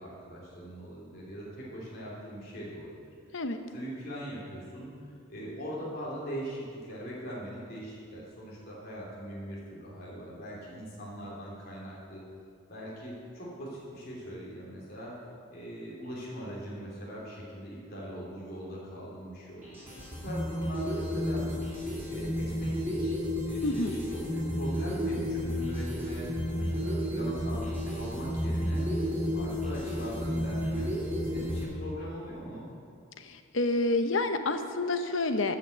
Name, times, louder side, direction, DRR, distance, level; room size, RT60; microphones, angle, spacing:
voice 1, 0.0-3.0 3.7-4.9 5.3-12.2 12.7-15.2 15.5-19.9 20.2-21.5 22.1-28.8 29.3-30.9 31.2-32.7, equal, 50° left, -6 dB, 2.9 m, -41 dB
sound 1, 19.6-31.6, equal, 10° right, 3.4 m, -32 dB
voice 2, 23.6-24.0 33.2-35.6, left 2 dB, 70° left, 8 dB, 0.8 m, -29 dB
13.0 x 6.0 x 7.8 m, 2.3 s
head